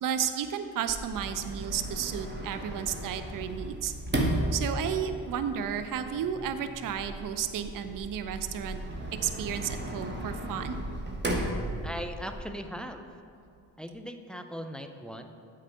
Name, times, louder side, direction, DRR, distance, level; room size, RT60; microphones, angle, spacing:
voice 1, 0.0-3.9 4.5-8.8 9.2-10.8, right 8 dB, 40° right, 9 dB, 0.6 m, -32 dB
Sliding door, 0.9-12.4, right 1 dB, 20° right, 1.2 m, -35 dB
voice 2, 11.8-13.1 13.8-15.2, equal, ahead, 6 dB, 0.4 m, -39 dB
8.2 x 4.0 x 5.4 m, 2.4 s
hypercardioid pair, 45°, 50 cm